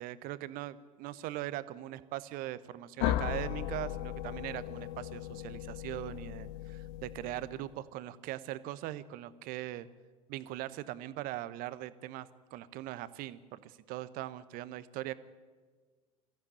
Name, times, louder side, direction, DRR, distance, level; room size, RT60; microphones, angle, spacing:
voice 1, 0.0-9.9 10.3-15.1, right 14 dB, 50° right, 16 dB, 1.0 m, -40 dB
sound 1, 3.0-7.7, left 13 dB, 55° left, 1.0 m, -37 dB
22.5 x 14.5 x 8.6 m, 1.5 s
figure-of-eight pair, 70°, 19 cm